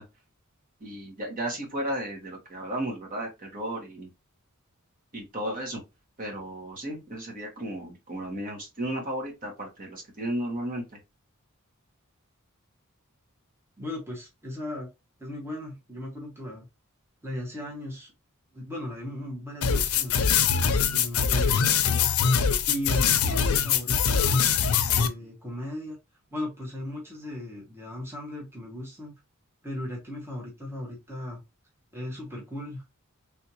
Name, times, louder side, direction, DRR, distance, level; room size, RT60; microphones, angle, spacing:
voice 1, 0.8-4.1 5.1-5.8 6.2-10.8, right 1 dB, 40° right, 1.3 m, -34 dB
voice 2, 13.8-14.9 15.2-16.7 17.2-18.1 18.5-20.2 20.9-22.1 22.7-24.4 24.8-26.0 26.3-29.1 29.6-31.4 31.9-32.8, left 1 dB, 10° right, 0.9 m, -37 dB
sound 1, 19.6-25.1, left 6 dB, 85° left, 0.5 m, -23 dB
3.4 x 2.7 x 2.9 m
head